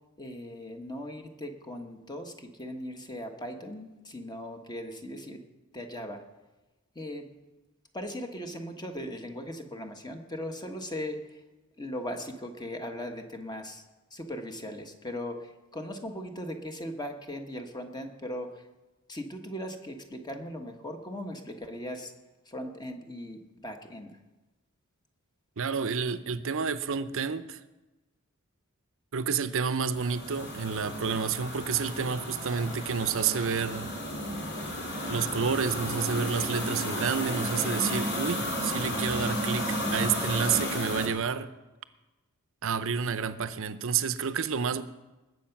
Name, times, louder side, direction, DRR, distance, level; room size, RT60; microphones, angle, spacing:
voice 1, 0.2-5.4 5.7-6.2 6.9-7.3 7.9-11.4 11.8-13.8 14.1-18.7 19.1-22.1 22.4-24.2, equal, 20° left, 5 dB, 1.3 m, -38 dB
voice 2, 25.6-27.6 29.1-33.9 35.1-41.5 42.6-44.8, right 6 dB, 65° right, 13 dB, 0.7 m, -29 dB
sound 1, 29.8-41.1, equal, 50° left, 2.8 m, -33 dB
20.0 x 7.9 x 5.9 m, 1.1 s
head